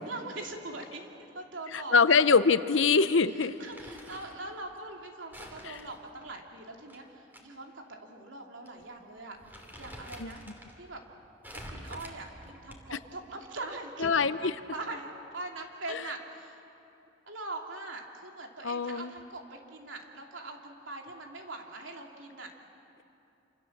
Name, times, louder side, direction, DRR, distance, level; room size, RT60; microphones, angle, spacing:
voice 1, 0.1-2.2 3.6-9.4 9.8-10.4 10.7-11.0 11.7-16.6 17.3-22.5, right 2 dB, 85° right, 2 dB, 3.0 m, -42 dB
voice 2, 1.7-3.5 5.6-5.8 10.2-10.3 12.9-13.0 14.0-14.4 15.9-16.0 18.6-19.1, left 5 dB, 80° left, 13 dB, 0.8 m, -24 dB
Crumpling crinkling, 3.4-4.4 5.3-7.4 7.8-7.9 8.7-8.8 9.2-10.7 11.4-13.0, equal, 10° right, 2.9 m, -47 dB
27.5 x 27.5 x 7.4 m, 2.8 s
head